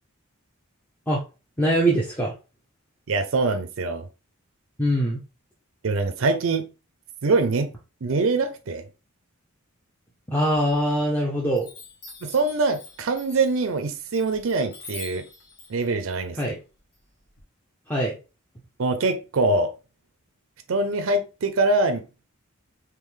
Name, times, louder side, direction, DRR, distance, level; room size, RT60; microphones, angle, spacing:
voice 1, 1.6-2.3 4.8-5.2 10.3-11.7 16.3-16.6 17.9-18.1, right 1 dB, 10° left, 0.6 m, -23 dB
voice 2, 3.1-4.1 5.8-6.7 7.2-7.7 8.0-8.9 12.2-15.2 15.7-16.4 18.8-19.7 20.7-22.1, right 3 dB, 65° right, 0.5 m, -23 dB
Chime, 11.6-17.4, left 4 dB, 50° left, 1.3 m, -45 dB
3.7 x 2.9 x 3.1 m
head